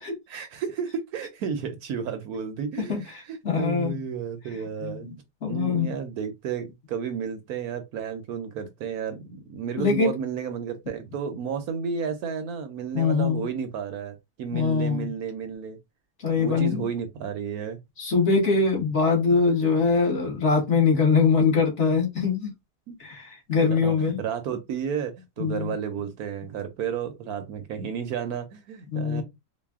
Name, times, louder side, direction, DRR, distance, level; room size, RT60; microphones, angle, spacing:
voice 1, 0.3-5.1 5.5-15.8 16.3-17.8 22.9-23.0 23.7-29.2, right 7 dB, 70° right, 1.0 m, -32 dB
voice 2, 2.9-4.0 4.8-5.1 5.4-6.0 9.8-10.1 12.9-13.5 14.5-15.1 16.2-16.9 18.0-22.5 23.0-24.2 25.4-25.7 28.9-29.2, left 5 dB, 45° left, 1.5 m, -23 dB
4.0 x 2.1 x 3.5 m
omnidirectional pair, 1.8 m